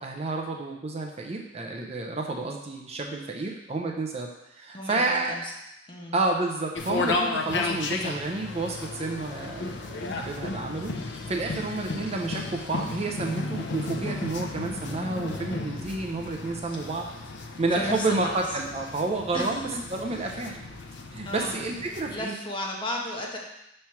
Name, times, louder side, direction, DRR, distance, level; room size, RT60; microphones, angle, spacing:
voice 1, 0.0-5.4 6.1-17.1 17.6-20.6 21.1-22.3, right 3 dB, 35° right, 1 dB, 0.6 m, -30 dB
voice 2, 4.7-5.5 5.9-6.1 16.7-16.8 17.8-18.3 19.3-19.5 20.9-21.0 21.2-21.6 22.1-23.4, left 1 dB, 25° left, -2 dB, 1.0 m, -34 dB
sound 1, 6.7-22.2, left 3 dB, 65° left, 0.6 m, -34 dB
5.8 x 3.3 x 5.7 m, 0.86 s
head